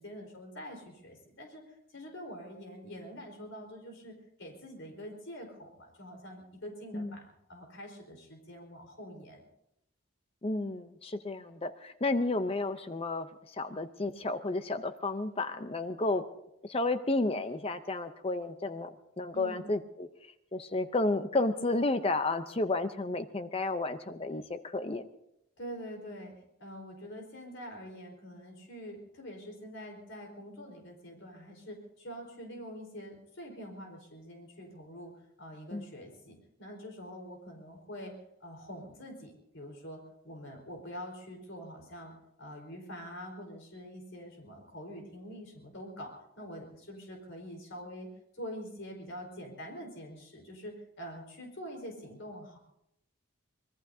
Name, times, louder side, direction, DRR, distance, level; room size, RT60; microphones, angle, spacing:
voice 1, 0.0-9.4 19.3-19.6 25.6-26.3 26.6-35.1 35.4-48.1 48.3-52.6, equal, 65° left, 1 dB, 4.4 m, -45 dB
voice 2, 10.4-16.2 16.6-20.1 20.5-25.0 35.7-35.9, left 2 dB, 30° left, 10 dB, 0.6 m, -32 dB
25.0 x 20.5 x 2.7 m, 0.83 s
head